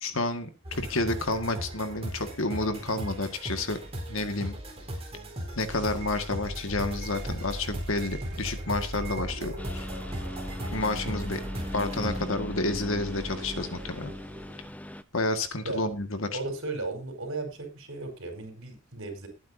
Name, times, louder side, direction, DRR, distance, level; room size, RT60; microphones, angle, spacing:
voice 1, 0.0-3.8 4.1-4.5 5.6-9.5 10.7-11.4 11.7-14.1 15.1-16.4, left 2 dB, 65° left, 8 dB, 1.9 m, -30 dB
sound 1, 0.6-12.3, equal, 25° right, 4.2 m, -38 dB
sound 2, 5.7-14.7, right 1 dB, 50° right, 3.4 m, -40 dB
Engine, 9.6-15.0, left 1 dB, 5° left, 0.6 m, -39 dB
voice 2, 16.3-19.3, right 3 dB, 65° right, 5 dB, 4.7 m, -35 dB
20.0 x 9.3 x 2.8 m, 0.28 s
head